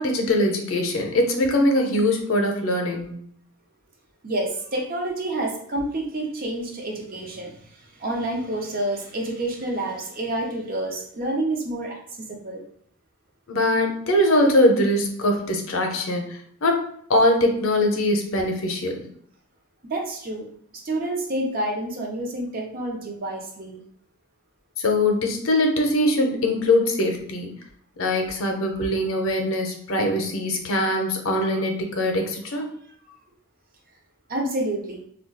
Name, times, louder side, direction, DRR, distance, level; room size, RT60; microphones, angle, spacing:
voice 1, 0.0-3.1 13.5-19.0 24.8-27.5 28.0-32.7, left 1 dB, 70° left, 3 dB, 0.6 m, -22 dB
voice 2, 4.2-12.0 12.3-12.6 19.9-20.5 20.7-23.8 34.3-35.0, right 1 dB, 45° right, 1 dB, 0.6 m, -28 dB
2.3 x 2.2 x 3.8 m, 0.64 s
head